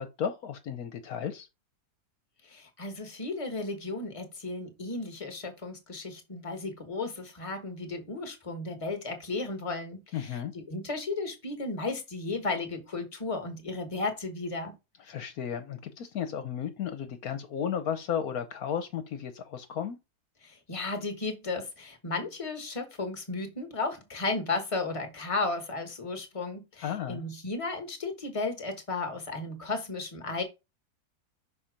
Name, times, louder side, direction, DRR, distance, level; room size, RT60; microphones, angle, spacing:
voice 1, 0.0-1.5 10.1-10.5 15.0-20.0 26.8-27.2, left 8 dB, 70° left, 1.2 m, -34 dB
voice 2, 2.4-14.7 20.4-30.4, left 3 dB, 20° left, 1.4 m, -34 dB
5.9 x 4.3 x 5.1 m
omnidirectional pair, 1.7 m